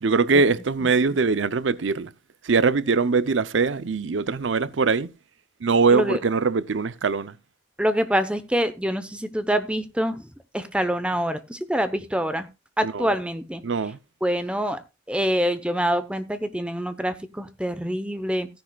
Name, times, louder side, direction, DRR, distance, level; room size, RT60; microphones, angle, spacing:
voice 1, 0.0-2.1 2.4-5.1 5.6-7.3 12.8-13.1 13.6-14.0, right 4 dB, 90° right, 0.6 m, -22 dB
voice 2, 7.8-10.3 10.5-12.5 12.8-13.6 14.2-14.8 15.1-18.5, equal, 5° right, 0.8 m, -25 dB
16.0 x 10.5 x 2.3 m
head